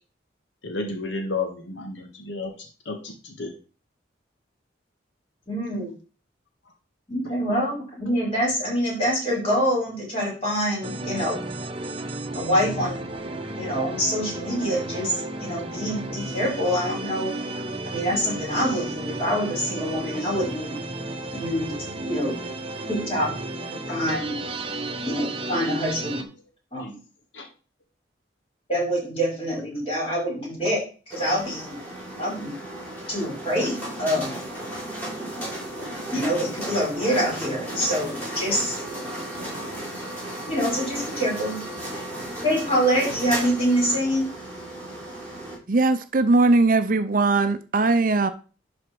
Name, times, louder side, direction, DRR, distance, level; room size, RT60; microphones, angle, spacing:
voice 1, 0.6-3.5 7.5-7.7 23.9-24.0 26.8-26.9 27.3-27.5, left 3 dB, 80° left, 4 dB, 1.6 m, -32 dB
voice 2, 5.5-5.9 7.1-11.4 12.4-13.0 13.6-17.3 17.9-20.7 21.3-21.7 22.0-22.4 22.9-23.3 23.9-24.4 25.0-26.3 26.7-26.9 28.7-30.8 31.1-31.8 32.2-32.5 33.1-34.4 36.1-38.8 40.5-41.6 42.4-44.2, equal, 30° left, -3 dB, 5.3 m, -25 dB
sound 1, 10.8-26.2, right 2 dB, 30° right, 0.9 m, -33 dB
sound 2, 31.1-45.5, right 1 dB, 10° left, 4.5 m, -34 dB
voice 3, 45.7-48.3, right 3 dB, 45° right, 11 dB, 0.6 m, -20 dB
11.0 x 4.3 x 4.6 m, 0.36 s
head